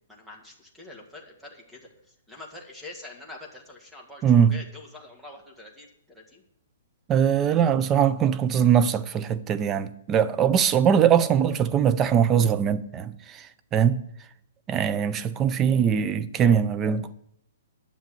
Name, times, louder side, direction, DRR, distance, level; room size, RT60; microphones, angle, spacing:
voice 1, 0.1-5.9 6.1-6.4, left 2 dB, ahead, 2.0 m, -45 dB
voice 2, 4.2-4.5 7.1-13.5 13.7-14.0 14.7-17.1, right 8 dB, 20° right, 0.6 m, -21 dB
10.5 x 6.7 x 7.7 m
hypercardioid pair, 150°, 0 cm